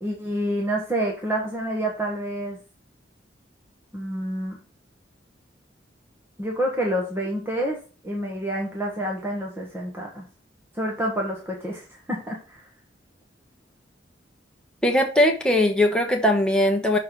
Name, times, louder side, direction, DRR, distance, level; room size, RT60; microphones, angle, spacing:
voice 1, 0.0-2.6 3.9-4.6 6.4-7.8 8.0-10.3 10.7-12.7, right 1 dB, 15° right, -1 dB, 1.2 m, -28 dB
voice 2, 14.8-17.0, left 1 dB, 5° left, 2 dB, 1.1 m, -20 dB
6.2 x 4.3 x 5.2 m, 0.36 s
head